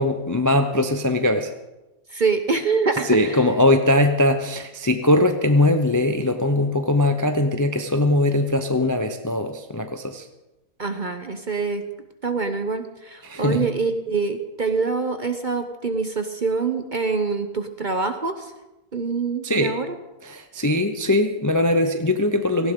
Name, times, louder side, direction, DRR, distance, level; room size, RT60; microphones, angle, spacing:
voice 1, 0.0-1.5 3.0-10.3 13.2-13.7 19.4-19.7 20.2-22.7, left 1 dB, 20° left, 7 dB, 0.5 m, -21 dB
voice 2, 2.1-3.5 10.8-11.8 12.2-18.5 18.9-19.9, right 4 dB, 40° right, 7 dB, 0.8 m, -25 dB
18.0 x 15.5 x 3.8 m, 1.0 s
omnidirectional pair, 1.6 m